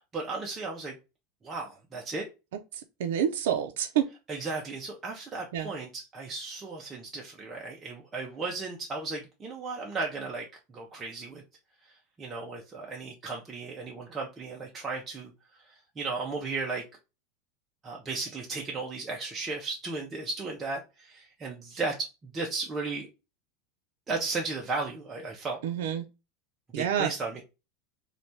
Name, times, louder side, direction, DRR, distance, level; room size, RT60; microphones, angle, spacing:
voice 1, 0.1-1.0 1.4-2.3 4.3-10.5 10.7-11.4 12.2-15.3 15.7-16.8 17.8-23.1 24.1-25.6 26.8-27.4, right 3 dB, 15° right, 0.4 m, -35 dB
voice 2, 2.7-4.1 5.5-5.7 25.6-26.0 26.7-27.1, right 9 dB, 80° right, 0.4 m, -28 dB
3.1 x 2.2 x 2.6 m
supercardioid pair, 160°, 0 cm